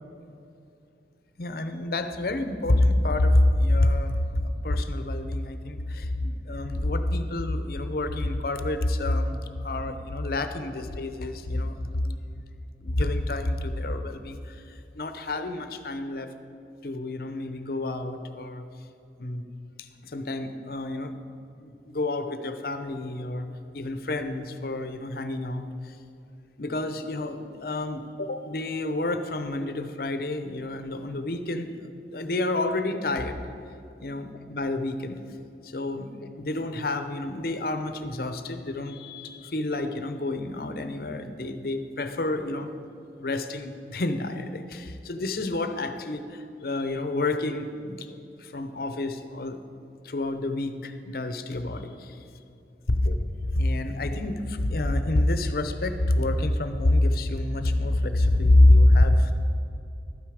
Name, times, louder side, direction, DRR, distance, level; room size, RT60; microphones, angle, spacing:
voice 1, 1.4-12.2 12.8-16.3 16.8-18.7 19.2-19.4 19.8-21.2 21.6-23.5 23.7-26.0 26.6-33.4 34.0-35.2 35.6-36.1 36.4-42.7 43.2-49.6 50.0-52.2 52.9-53.2 53.5-59.3, left 1 dB, 55° left, 9 dB, 0.7 m, -27 dB
12.5 x 9.2 x 4.9 m, 2.7 s
head